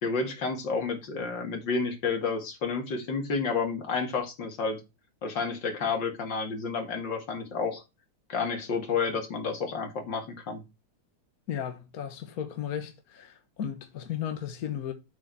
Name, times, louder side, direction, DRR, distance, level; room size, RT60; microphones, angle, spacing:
voice 1, 0.0-4.8 5.2-7.8 8.3-10.6, left 4 dB, 90° left, 2.9 m, -30 dB
voice 2, 11.5-14.9, left 9 dB, 55° left, 1.6 m, -35 dB
7.7 x 6.6 x 4.6 m
omnidirectional pair, 1.9 m